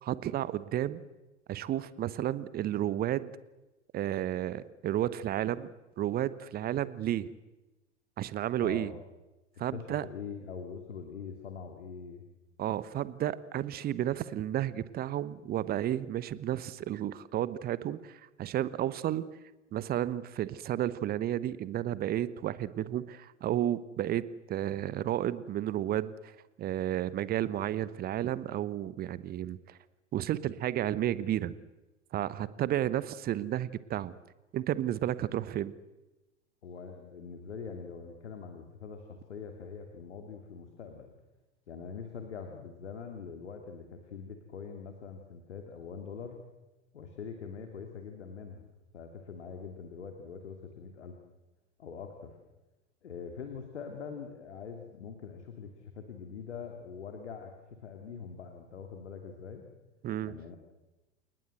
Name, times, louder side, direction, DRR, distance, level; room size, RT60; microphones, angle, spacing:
voice 1, 0.0-1.0 1.5-3.3 3.9-5.7 6.0-7.3 8.2-8.9 9.6-10.0 12.6-19.3 19.7-26.3 26.6-29.8 30.1-31.5 32.1-34.2 34.5-35.7 60.0-60.3, right 12 dB, 25° right, 17 dB, 1.0 m, -32 dB
voice 2, 8.6-9.0 9.7-12.2 36.6-41.1 41.7-46.4 46.9-48.6 48.9-51.2 51.8-52.4 53.0-59.7 60.2-60.6, left 6 dB, 65° left, 5 dB, 2.9 m, -43 dB
29.0 x 19.0 x 7.9 m, 1.1 s
figure-of-eight pair, 90°, 37 cm